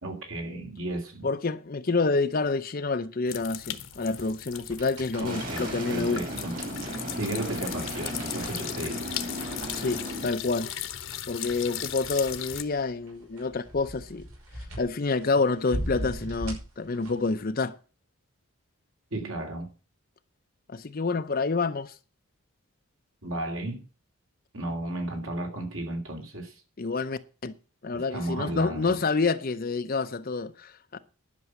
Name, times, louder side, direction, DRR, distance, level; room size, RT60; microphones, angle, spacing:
voice 1, 0.0-1.3 5.2-6.6 7.2-9.0 19.1-19.7 23.2-23.8 24.5-26.5 27.9-29.0, right 1 dB, 65° right, 3.2 m, -34 dB
voice 2, 1.2-6.2 9.7-10.7 11.3-14.3 14.6-17.8 20.7-21.9 26.8-27.5 27.8-31.0, left 3 dB, 40° left, 0.6 m, -28 dB
sound 1, 3.3-12.6, left 11 dB, 60° left, 1.0 m, -37 dB
sound 2, 3.7-17.4, right 1 dB, 85° right, 5.5 m, -41 dB
sound 3, 5.2-10.3, equal, 40° right, 2.5 m, -36 dB
11.0 x 6.1 x 8.3 m
head